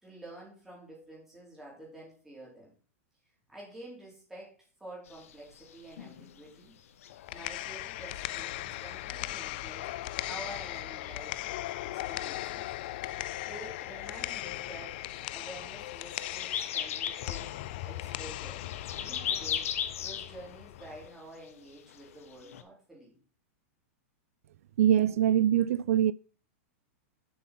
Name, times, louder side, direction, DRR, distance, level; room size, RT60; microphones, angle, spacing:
voice 1, 0.0-2.7 3.5-6.7 7.3-9.9 10.2-11.4 11.8-12.7 13.4-15.0 15.3-17.5 17.8-18.7 18.9-19.7 20.0-23.2, right 1 dB, 5° right, 3.6 m, -49 dB
sound 1, 5.1-22.6, left 9 dB, 70° left, 1.0 m, -41 dB
sound 2, 7.1-21.1, left 16 dB, 40° left, 0.4 m, -38 dB
voice 2, 24.8-26.1, right 10 dB, 70° right, 0.3 m, -23 dB
7.3 x 5.9 x 5.8 m
supercardioid pair, 170°, 8 cm